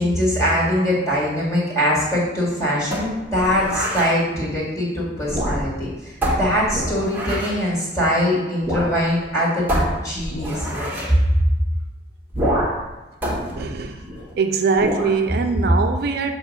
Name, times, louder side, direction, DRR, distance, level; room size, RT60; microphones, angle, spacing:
voice 1, 0.0-11.1, equal, 15° left, -6 dB, 2.0 m, -22 dB
sound 1, 2.9-4.1 5.2-5.8 6.2-7.6 8.6-8.9 9.2-9.3 9.7-11.1 12.3-12.9 13.2-14.3 14.8-15.2, equal, 10° right, 1.3 m, -25 dB
voice 2, 13.6-14.0 14.4-16.4, right 4 dB, 60° right, 5 dB, 0.4 m, -22 dB
7.1 x 3.0 x 5.2 m, 1.1 s
head